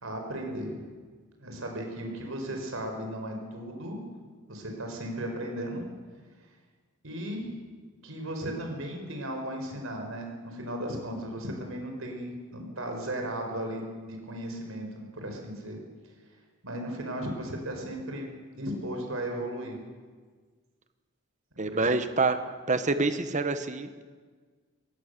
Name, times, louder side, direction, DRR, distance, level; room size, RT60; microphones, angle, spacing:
voice 1, 0.0-0.8 1.4-4.0 4.5-5.8 7.0-7.5 8.0-15.8 16.6-18.3 18.5-19.8 21.7-21.9, right 1 dB, 80° right, 3 dB, 4.8 m, -36 dB
voice 2, 21.6-22.4 22.7-24.0, right 3 dB, 35° right, 10 dB, 1.2 m, -26 dB
23.0 x 17.0 x 6.8 m, 1.5 s
head